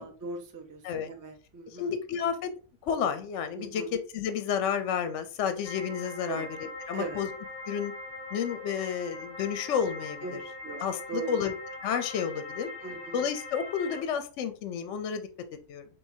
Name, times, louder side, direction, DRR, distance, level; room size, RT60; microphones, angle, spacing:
voice 1, 0.0-1.9 3.6-3.9 6.3-6.5 6.9-7.2 10.2-10.4 10.6-10.8 11.1-11.4 12.8-13.2, right 4 dB, 20° right, 2 dB, 0.5 m, -39 dB
voice 2, 1.7-2.5 2.8-7.3 7.7-7.9 8.3-10.4 10.8-11.5 11.8-12.7 13.1-15.3 15.7-15.9, left 7 dB, 70° left, 9 dB, 0.8 m, -31 dB
sound 1, 5.6-14.0, left 2 dB, 30° left, 0.5 m, -42 dB
4.6 x 3.3 x 2.7 m, 0.37 s
omnidirectional pair, 1.4 m